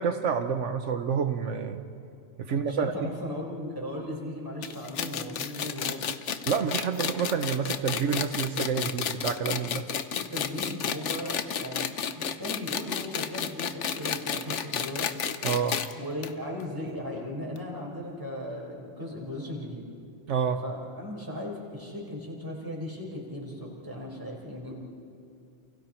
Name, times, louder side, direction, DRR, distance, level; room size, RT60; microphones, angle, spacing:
voice 1, 0.0-1.8 2.4-3.1 6.5-9.8 15.4-15.8 20.3-20.6, right 6 dB, 80° right, 7 dB, 1.3 m, -28 dB
voice 2, 2.4-6.0 10.1-15.1 15.9-19.9 20.6-24.7, left 1 dB, 15° right, -3 dB, 5.1 m, -37 dB
sound 1, 4.6-15.9 16.2-16.3 16.6-16.7 17.6-17.7, left 7 dB, 80° left, 1.2 m, -31 dB
29.5 x 28.5 x 4.5 m, 2.5 s
omnidirectional pair, 1.2 m